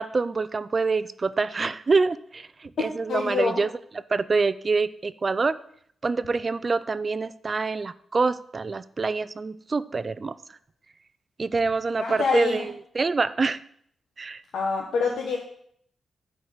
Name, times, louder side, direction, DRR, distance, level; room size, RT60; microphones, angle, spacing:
voice 1, 0.0-3.7 4.1-5.6 6.0-10.4 11.4-13.6 14.2-14.4, right 4 dB, 30° right, 16 dB, 0.3 m, -26 dB
voice 2, 3.1-3.6 12.0-12.7 14.5-15.4, left 4 dB, 80° left, -2 dB, 1.3 m, -26 dB
9.2 x 4.5 x 6.4 m, 0.66 s
wide cardioid pair, 155°, 0 cm